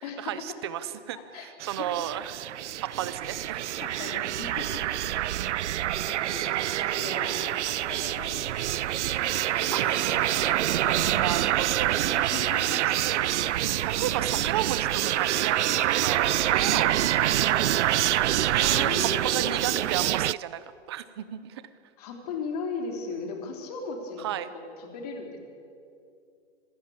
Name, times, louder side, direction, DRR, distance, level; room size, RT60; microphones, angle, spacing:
voice 1, 0.2-2.4 2.8-3.6 5.4-5.5 9.7-9.8 10.8-12.0 13.0-13.5 13.8-17.6 18.5-21.6 24.2-24.5, right 11 dB, 25° right, 14 dB, 0.6 m, -34 dB
voice 2, 1.1-1.5 1.8-1.9 3.8-4.8 6.1-6.5 6.8-8.8 9.6-10.6 10.9-11.4 12.2-12.8 16.6-16.8 18.6-19.6 22.0-24.3 24.5-25.4, left 4 dB, 35° left, 3 dB, 3.5 m, -38 dB
sound 1, 1.6-20.3, right 13 dB, 90° right, 0.5 m, -26 dB
sound 2, 5.1-9.4, right 2 dB, 50° right, 8.0 m, -53 dB
26.5 x 15.5 x 8.7 m, 2.5 s
hypercardioid pair, 170°, 34 cm